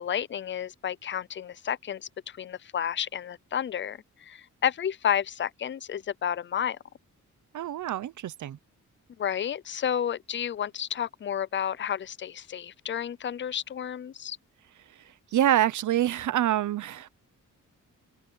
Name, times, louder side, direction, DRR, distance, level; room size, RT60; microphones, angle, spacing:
voice 1, 0.0-6.8 9.2-14.4, left 9 dB, 40° left, 0.4 m, -31 dB
voice 2, 7.5-8.6 15.3-17.1, right 12 dB, 70° right, 0.8 m, -26 dB
wide cardioid pair, 170°, 31 cm